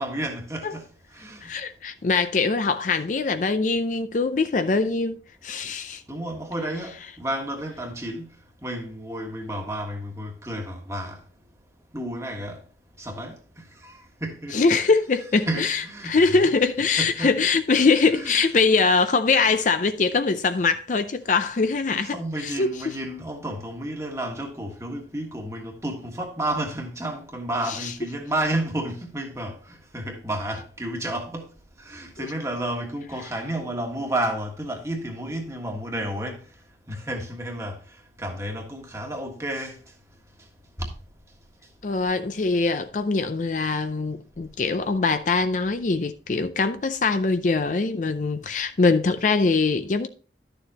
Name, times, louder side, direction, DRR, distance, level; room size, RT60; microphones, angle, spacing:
voice 1, 0.0-1.5 6.1-11.2 11.9-12.6 13.0-14.9 15.5-16.5 17.0-17.4 18.1-18.3 22.1-31.5 31.8-36.4 36.9-37.8 38.2-39.8 40.8-40.9, right 1 dB, 15° right, 1.5 m, -31 dB
voice 2, 1.4-6.0 14.5-22.9 27.7-27.9 41.8-50.1, left 4 dB, 45° left, 0.5 m, -23 dB
12.0 x 6.9 x 2.9 m
head